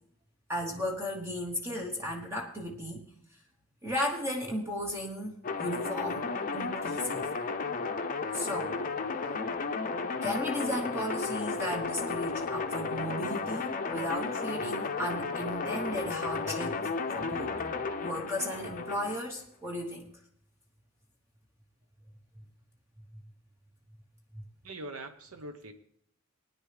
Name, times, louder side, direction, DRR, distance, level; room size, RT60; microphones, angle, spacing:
voice 1, 0.5-3.0 3.8-6.3 6.5-7.3 8.3-8.8 10.2-17.6 18.0-20.1 24.3-24.4, left 1 dB, 15° right, 0 dB, 1.0 m, -35 dB
sound 1, 5.4-19.2, left 4 dB, 40° left, 0.6 m, -33 dB
voice 2, 24.6-25.7, right 2 dB, 85° right, 7 dB, 0.9 m, -42 dB
19.5 x 9.8 x 3.3 m, 0.71 s
head